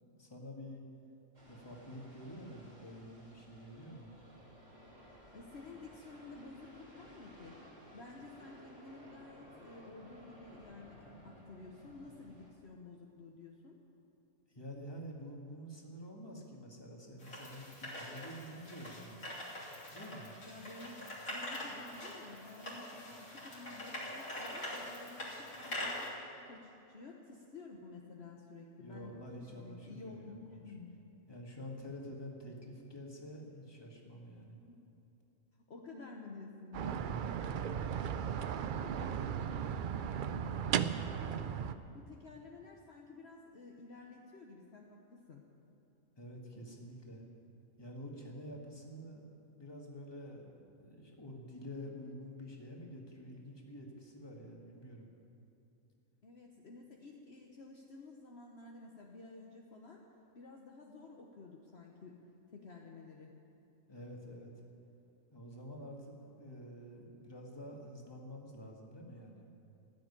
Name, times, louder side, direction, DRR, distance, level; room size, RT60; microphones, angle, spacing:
voice 1, 0.2-0.8 1.5-4.1 14.5-19.2 19.9-20.3 28.8-30.6 31.3-34.6 36.8-37.6 46.2-47.2 47.8-49.2 49.5-55.1 63.9-64.5 65.3-69.5, equal, 20° left, -1 dB, 1.9 m, -48 dB
sound 1, 1.3-12.5, equal, 30° right, 2.7 m, -57 dB
voice 2, 5.3-7.6 7.9-13.8 20.4-21.0 21.3-29.3 29.6-30.9 34.7-34.8 35.7-37.7 38.5-41.6 41.9-45.5 56.2-60.0 60.3-62.2 62.5-63.3, left 3 dB, 50° left, 0 dB, 1.2 m, -52 dB
sound 2, 17.2-26.1, left 1 dB, 80° left, 3.7 m, -44 dB
sound 3, 36.7-41.8, right 8 dB, 75° right, 0.4 m, -36 dB
15.0 x 7.8 x 9.9 m, 2.9 s
omnidirectional pair, 1.4 m